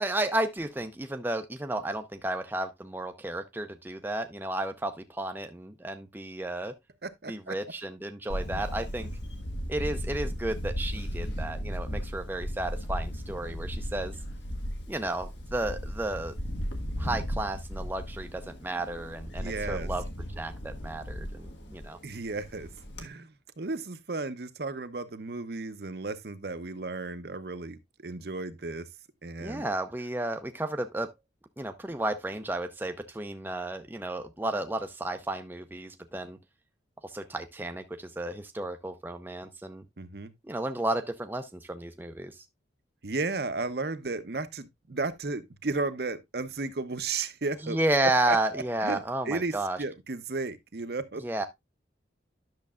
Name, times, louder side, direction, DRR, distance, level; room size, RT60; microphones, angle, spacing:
voice 1, 0.0-6.7 7.3-9.1 9.7-14.1 14.9-16.3 17.0-20.0 20.4-22.0 29.4-31.1 31.6-36.4 37.0-39.8 40.4-42.4 47.6-49.8 51.2-51.4, right 1 dB, 10° right, 0.5 m, -32 dB
voice 2, 7.0-7.5 19.4-19.9 22.0-22.7 23.0-28.8 29.2-29.6 40.0-40.3 43.0-47.8 48.3-51.2, right 3 dB, 55° right, 0.8 m, -34 dB
Camera, 8.3-23.1, equal, 80° left, 1.6 m, -36 dB
10.5 x 6.6 x 2.4 m
head